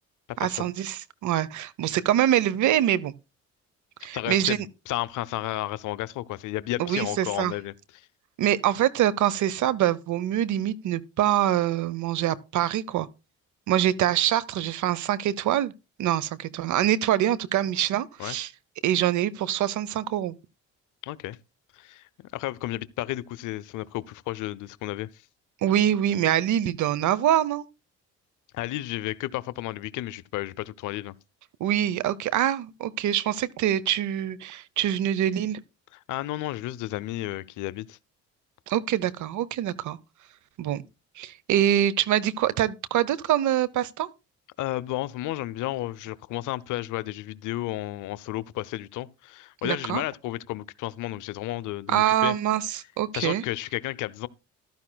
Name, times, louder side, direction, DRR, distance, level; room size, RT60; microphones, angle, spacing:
voice 1, 0.4-3.1 4.0-4.6 6.8-7.5 8.4-13.1 13.7-15.7 16.0-18.5 18.8-20.3 25.6-27.7 31.6-35.6 38.7-40.0 40.6-40.8 41.2-44.1 49.6-50.0 51.9-53.4, right 11 dB, 75° right, 0.8 m, -24 dB
voice 2, 4.1-8.1 18.2-18.4 21.0-21.4 21.7-25.2 28.5-31.1 35.9-38.0 44.6-52.3 53.1-54.3, left 16 dB, 85° left, 0.6 m, -32 dB
14.5 x 12.0 x 2.3 m
cardioid pair, 90°, 30 cm